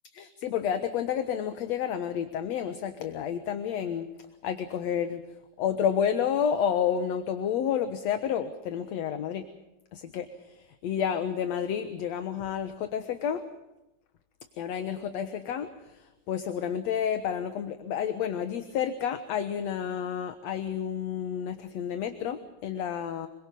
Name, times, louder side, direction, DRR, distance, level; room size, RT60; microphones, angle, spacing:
voice 1, 0.2-4.1 4.4-5.2 5.6-9.5 9.9-10.3 10.8-13.4 14.6-15.7 16.3-23.3, left 8 dB, 65° left, 9 dB, 2.4 m, -30 dB
26.5 x 23.5 x 5.4 m, 0.94 s
omnidirectional pair, 3.4 m